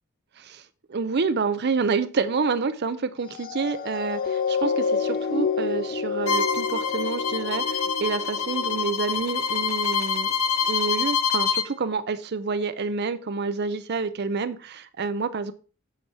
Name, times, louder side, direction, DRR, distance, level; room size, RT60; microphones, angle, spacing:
voice 1, 0.9-10.3 10.7-15.5, right 4 dB, 50° right, 12 dB, 0.6 m, -28 dB
sound 1, 3.3-10.0 10.6-10.8, left 5 dB, 45° left, 0.6 m, -29 dB
Bowed string instrument, 6.3-11.7, left 6 dB, 80° left, 0.7 m, -26 dB
8.3 x 5.9 x 4.8 m, 0.37 s
head